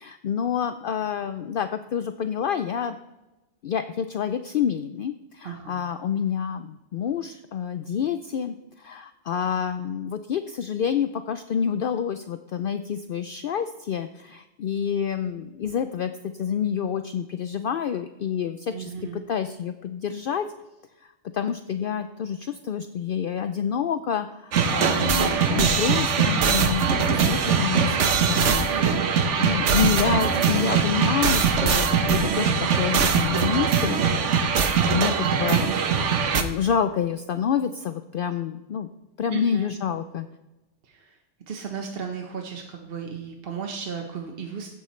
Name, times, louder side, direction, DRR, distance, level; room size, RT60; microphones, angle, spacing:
voice 1, 0.0-3.0 3.6-20.5 21.0-28.7 29.0-29.1 29.4-34.0 34.9-36.0 36.3-38.9 39.2-40.3, left 8 dB, 60° left, 9 dB, 0.6 m, -28 dB
voice 2, 5.4-5.8 18.7-19.2 39.3-39.7 40.8-41.2 41.5-44.7, right 6 dB, 55° right, 2 dB, 1.3 m, -35 dB
sound 1, 24.5-36.4, right 6 dB, 90° right, 1.2 m, -22 dB
15.5 x 9.2 x 3.2 m, 1.0 s
omnidirectional pair, 1.2 m